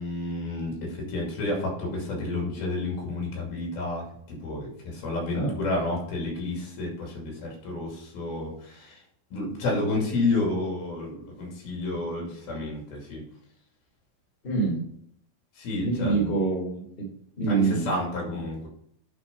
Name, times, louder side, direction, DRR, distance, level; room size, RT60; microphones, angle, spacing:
voice 1, 0.0-9.0 9.3-13.2 15.6-16.3 17.5-18.7, left 2 dB, 65° left, -1 dB, 4.3 m, -30 dB
voice 2, 14.4-14.8 15.8-17.1 17.4-17.9, right 4 dB, 15° left, -2 dB, 2.1 m, -25 dB
9.4 x 4.8 x 5.4 m, 0.69 s
omnidirectional pair, 4.8 m